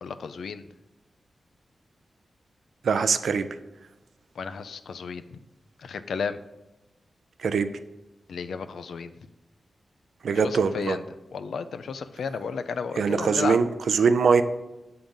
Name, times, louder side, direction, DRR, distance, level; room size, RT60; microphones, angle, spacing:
voice 1, 0.0-0.6 4.4-5.4 5.8-6.4 8.3-9.1 10.4-11.0 11.3-13.6, left 5 dB, 80° left, 11 dB, 0.3 m, -33 dB
voice 2, 2.8-3.5 7.4-7.7 10.2-11.0 13.0-14.4, right 5 dB, 80° right, 11 dB, 0.4 m, -22 dB
7.1 x 3.8 x 5.2 m, 1.0 s
cardioid pair, 55°, 0 cm